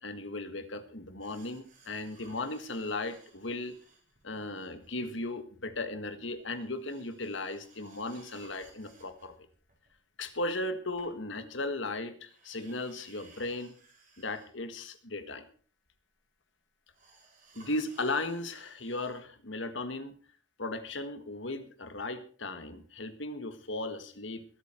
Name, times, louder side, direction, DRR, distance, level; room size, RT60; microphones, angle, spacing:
voice 1, 0.0-3.8 4.2-9.3 10.2-13.8 14.2-15.5 17.5-20.1 20.6-24.4, left 2 dB, 70° left, 10 dB, 1.7 m, -36 dB
sound 1, 1.2-5.4 5.7-5.8 6.2-11.8 12.2-14.6 15.0-15.1 15.8-15.9 16.9-19.2 19.6-19.7, right 3 dB, 45° right, 4.8 m, -60 dB
22.0 x 8.3 x 4.4 m, 0.42 s
head